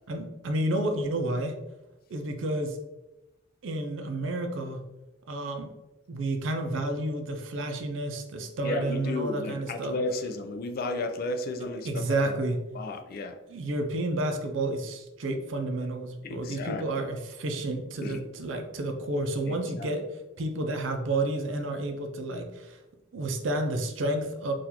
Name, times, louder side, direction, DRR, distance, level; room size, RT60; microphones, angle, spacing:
voice 1, 0.1-1.5 2.1-2.8 3.6-4.8 5.3-5.7 6.1-9.9 11.8-12.6 13.5-20.1 20.4-22.8 23.1-24.5, right 1 dB, 90° right, 5 dB, 0.5 m, -30 dB
voice 2, 8.6-12.3 12.7-13.4 16.2-17.1 18.0-18.2 19.5-19.9, left 2 dB, 50° left, 6 dB, 0.4 m, -33 dB
3.8 x 2.4 x 2.9 m, 0.98 s
head